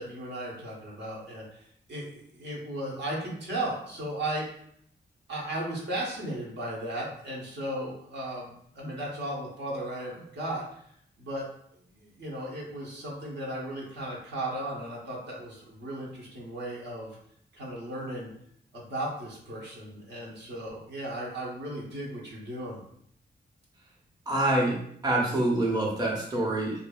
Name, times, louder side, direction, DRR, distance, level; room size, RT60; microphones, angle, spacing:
voice 1, 0.0-4.4 5.3-10.6 11.2-11.4 11.7-17.2 17.5-18.3 18.7-22.8, right 1 dB, 70° right, -4 dB, 0.9 m, -36 dB
voice 2, 24.3-24.8 25.0-26.8, right 1 dB, 20° right, -4 dB, 0.7 m, -26 dB
2.6 x 2.5 x 2.2 m, 0.68 s
cardioid pair, 75°, 19 cm